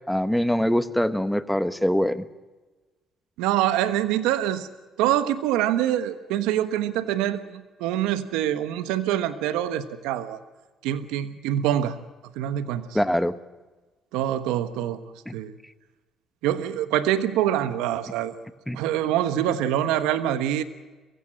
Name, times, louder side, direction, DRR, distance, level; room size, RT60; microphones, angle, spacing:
voice 1, 0.1-2.2 12.9-13.3 15.3-15.4 18.7-18.8, equal, 5° left, 12 dB, 1.3 m, -23 dB
voice 2, 3.4-4.7 5.0-10.4 10.8-12.0 12.4-12.8 14.1-15.0 15.3-15.5 16.4-18.3 18.7-20.6, right 11 dB, 90° right, 12 dB, 1.2 m, -25 dB
22.5 x 16.0 x 8.7 m, 1.2 s
cardioid pair, 85°, 0 cm